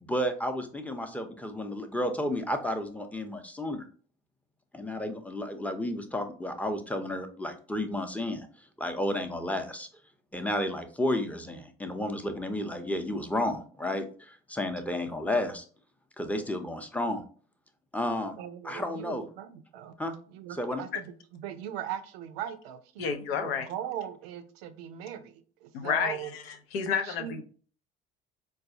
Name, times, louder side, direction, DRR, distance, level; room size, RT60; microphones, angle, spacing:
voice 1, 0.0-3.9 4.7-8.5 8.8-9.9 10.3-15.6 16.2-17.2 17.9-18.4 18.6-19.2 20.0-20.2 20.6-20.8, left 1 dB, 5° left, 0.6 m, -32 dB
voice 2, 18.4-19.9 20.3-23.1 23.4-26.3 27.0-27.4, right 10 dB, 75° right, 0.5 m, -39 dB
voice 3, 23.0-23.7 25.7-27.4, left 7 dB, 75° left, 0.6 m, -30 dB
4.6 x 2.2 x 2.6 m
hypercardioid pair, 55°, 30 cm